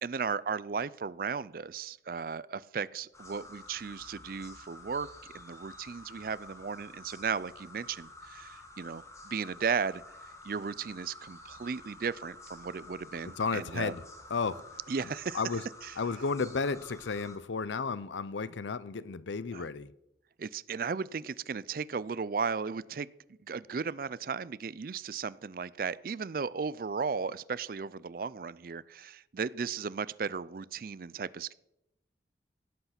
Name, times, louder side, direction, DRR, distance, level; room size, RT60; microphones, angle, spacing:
voice 1, 0.0-5.1 5.3-10.0 10.4-13.9 14.9-15.4 15.8-15.9 19.5-19.7 20.4-23.1 23.4-31.5, right 5 dB, 50° right, 0.4 m, -35 dB
sound 1, 3.1-17.4, left 2 dB, 15° left, 1.5 m, -50 dB
voice 2, 13.2-14.0 14.3-14.8 15.3-15.6 16.0-19.9, left 4 dB, 85° left, 0.6 m, -33 dB
17.0 x 8.0 x 5.9 m
head